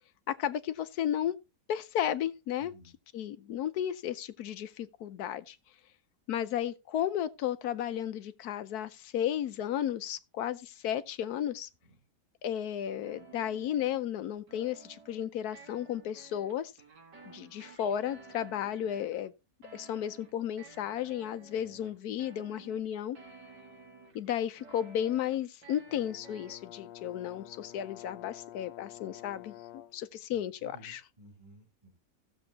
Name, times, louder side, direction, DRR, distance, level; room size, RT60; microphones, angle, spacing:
voice 1, 0.3-1.4 1.7-2.7 3.1-5.6 6.3-11.7 12.4-16.7 17.2-19.3 19.7-23.2 24.1-29.5 29.9-31.0, left 10 dB, 70° left, 1.2 m, -33 dB
voice 2, 2.6-2.9 11.8-12.0 30.3-32.0, right 2 dB, 20° right, 3.1 m, -56 dB
sound 1, 13.0-14.1 14.5-15.3 15.5-19.2 19.6-24.3 24.6-26.6, right 4 dB, 80° right, 2.5 m, -54 dB
Brass instrument, 25.9-30.0, left 12 dB, 85° left, 1.3 m, -49 dB
16.0 x 7.0 x 2.8 m
omnidirectional pair, 1.8 m